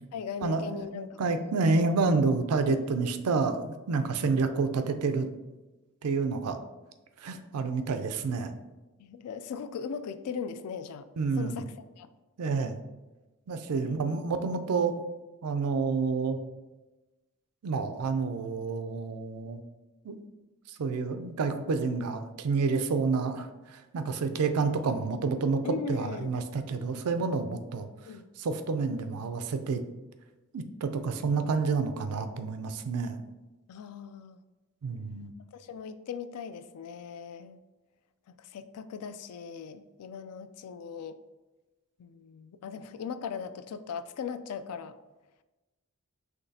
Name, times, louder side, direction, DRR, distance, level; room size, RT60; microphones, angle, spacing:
voice 1, 0.1-1.5 4.2-4.4 9.0-11.1 11.4-12.1 13.8-14.3 25.6-26.4 28.0-28.3 33.7-34.4 35.5-37.6 38.3-41.2 42.0-45.0, left 6 dB, 85° left, 12 dB, 0.3 m, -39 dB
voice 2, 0.9-5.3 6.0-6.6 7.2-8.5 11.2-11.6 12.4-12.8 13.5-15.0 15.4-16.4 17.6-19.6 20.0-20.2 20.8-25.6 25.9-27.9 28.4-29.8 30.5-33.2 34.8-35.3, right 4 dB, 90° right, 9 dB, 0.4 m, -29 dB
5.8 x 3.1 x 2.7 m, 1.1 s
head